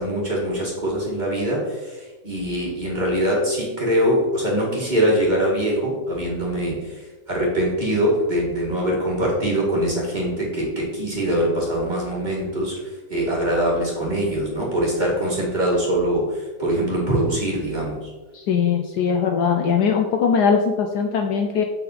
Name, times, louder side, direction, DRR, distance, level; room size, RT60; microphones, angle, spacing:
voice 1, 0.0-12.8 13.1-18.1, right 1 dB, 25° right, -5 dB, 2.1 m, -23 dB
voice 2, 18.3-21.6, left 6 dB, 70° left, 3 dB, 1.1 m, -20 dB
7.8 x 5.9 x 4.1 m, 1.3 s
omnidirectional pair, 2.0 m